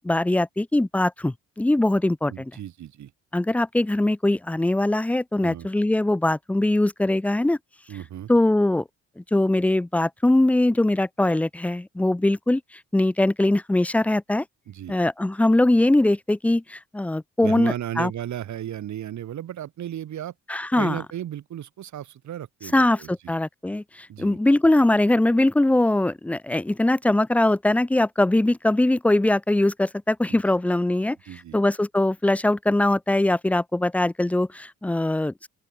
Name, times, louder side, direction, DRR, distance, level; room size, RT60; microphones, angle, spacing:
voice 1, 0.0-2.5 3.3-7.6 8.3-8.8 9.2-12.6 12.9-14.4 14.9-18.1 20.5-21.0 22.7-31.2 31.5-35.5, left 1 dB, 5° left, 0.3 m, -21 dB
voice 2, 2.3-3.1 5.4-5.7 7.9-8.3 14.7-14.9 17.4-20.3 20.8-23.1 24.1-24.4 30.3-30.4 31.2-31.6, right 11 dB, 70° right, 4.9 m, -34 dB
open air
cardioid pair, 90°, 30 cm